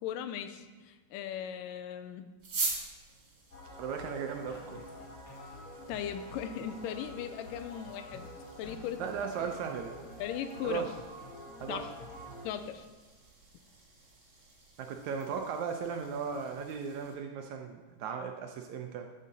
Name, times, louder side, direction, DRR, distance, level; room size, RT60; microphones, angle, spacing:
voice 1, 0.0-2.3 5.9-8.3 8.6-9.0 10.2-10.9 11.7-11.9 12.4-12.9, left 9 dB, 85° left, 10 dB, 2.2 m, -38 dB
sound 1, 2.4-17.1, right 3 dB, 35° right, 2.7 m, -45 dB
sound 2, 3.5-12.5, left 1 dB, 30° left, 1.9 m, -47 dB
voice 2, 3.8-4.8 9.0-10.0 10.6-10.9 11.6-11.9 14.8-19.1, right 6 dB, 75° right, 4 dB, 1.8 m, -36 dB
12.5 x 7.5 x 4.0 m, 1.4 s
omnidirectional pair, 3.8 m